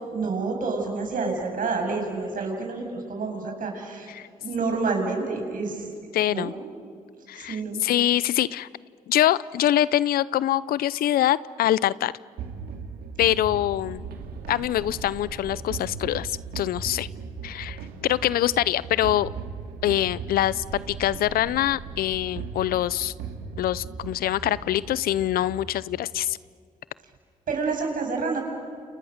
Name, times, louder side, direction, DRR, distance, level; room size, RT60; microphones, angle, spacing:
voice 1, 0.1-4.1 4.4-5.9 6.3-6.5 7.4-7.8 27.5-28.5, right 4 dB, 65° right, 2 dB, 7.4 m, -28 dB
voice 2, 6.1-6.5 7.3-8.7 9.1-12.1 13.2-14.1 14.5-17.1 17.4-19.3 19.8-23.1 23.6-26.4, left 13 dB, 80° left, 20 dB, 0.6 m, -24 dB
sound 1, 12.4-25.7, right 5 dB, 85° right, 2.5 m, -38 dB
29.5 x 29.0 x 6.6 m, 2.4 s
supercardioid pair, 55°, 15 cm